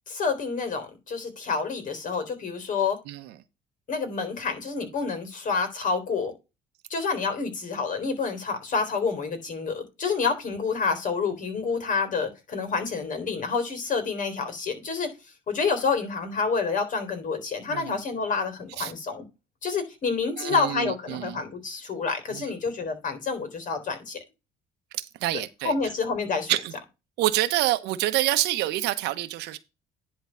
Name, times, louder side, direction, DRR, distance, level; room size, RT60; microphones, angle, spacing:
voice 1, 0.1-3.0 3.9-6.3 6.9-15.1 15.5-19.2 19.6-24.2 25.6-26.5, left 5 dB, 50° left, 3.8 m, -28 dB
voice 2, 17.7-18.0 18.8-18.9 20.4-21.4 22.3-22.5 25.0-25.7 26.5-26.7 27.2-29.6, right 15 dB, 90° right, 1.1 m, -27 dB
10.5 x 3.9 x 5.6 m
cardioid pair, 110°, 17 cm